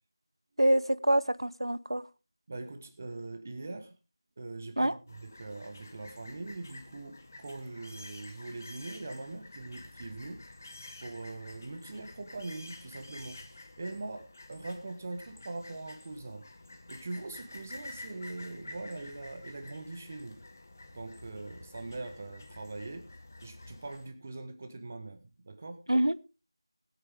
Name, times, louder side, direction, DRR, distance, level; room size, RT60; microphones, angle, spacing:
voice 1, 0.6-2.0 4.8-5.0 25.9-26.2, right 1 dB, 70° right, 17 dB, 0.9 m, -26 dB
voice 2, 2.5-3.9 4.4-10.4 11.0-16.4 16.9-20.4 20.9-23.1 23.4-25.8, right 2 dB, 25° right, 8 dB, 1.3 m, -42 dB
sound 1, 5.1-24.1, left 2 dB, 35° left, 1.3 m, -50 dB
19.5 x 8.9 x 3.5 m, 0.31 s
figure-of-eight pair, 170°, 3 cm